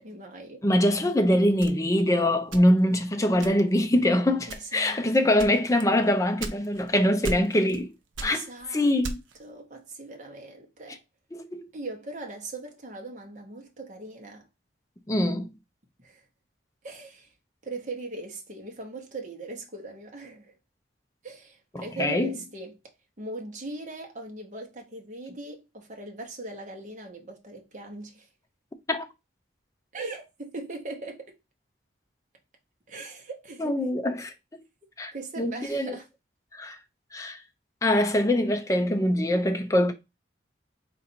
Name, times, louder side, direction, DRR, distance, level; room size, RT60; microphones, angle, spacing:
voice 1, 0.0-0.6 4.5-5.4 8.2-8.9 9.4-11.0 11.7-14.5 16.0-16.2 16.8-17.3 17.6-20.6 21.2-22.8 23.2-28.3 29.9-31.4 32.9-33.8 35.1-36.1, right 3 dB, 40° right, 0.9 m, -40 dB
voice 2, 0.6-7.9 8.2-9.2 11.3-11.6 15.1-15.5 22.0-22.3 28.9-29.1 33.6-34.6 35.0-36.0 36.5-36.8 37.1-37.4 37.8-39.9, left 1 dB, 15° left, 0.5 m, -23 dB
sound 1, 1.6-3.0 3.4-3.9 4.4-4.9 5.4-6.9 7.2-7.9 8.1-9.5, right 2 dB, 90° right, 0.7 m, -37 dB
3.9 x 2.5 x 4.2 m
head